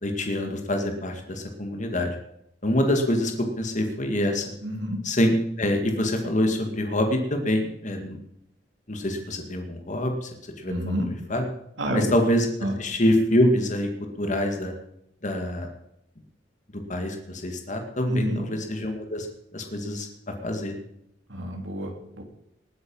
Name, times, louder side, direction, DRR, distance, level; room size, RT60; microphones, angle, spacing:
voice 1, 0.0-2.1 2.6-4.5 5.0-8.2 8.9-10.3 10.6-11.5 11.9-12.5 12.8-13.9 14.2-14.7 15.2-15.7 16.7-19.3 19.5-20.1 20.4-20.8, left 1 dB, 40° left, 4 dB, 2.1 m, -25 dB
voice 2, 4.6-5.0 10.7-11.1 11.8-12.1 12.6-12.8 18.1-18.4 21.3-22.2, equal, 80° right, 3 dB, 3.2 m, -29 dB
19.5 x 9.7 x 5.5 m, 0.76 s
head